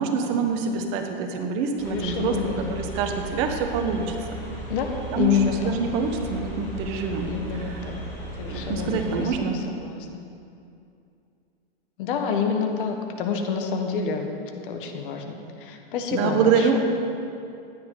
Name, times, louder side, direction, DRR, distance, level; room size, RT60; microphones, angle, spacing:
voice 1, 0.0-4.1 5.1-5.3 5.6-7.3 8.5-9.6 16.1-16.8, right 5 dB, 45° right, 4 dB, 1.3 m, -25 dB
voice 2, 1.8-2.8 4.7-5.8 7.3-8.0 8.3-10.2 12.0-14.3 14.6-16.8, left 6 dB, 60° left, 4 dB, 1.5 m, -28 dB
sound 1, 1.8-9.3, right 1 dB, 10° left, 3.2 m, -36 dB
15.5 x 10.5 x 4.0 m, 2.6 s
hypercardioid pair, 140°, 30 cm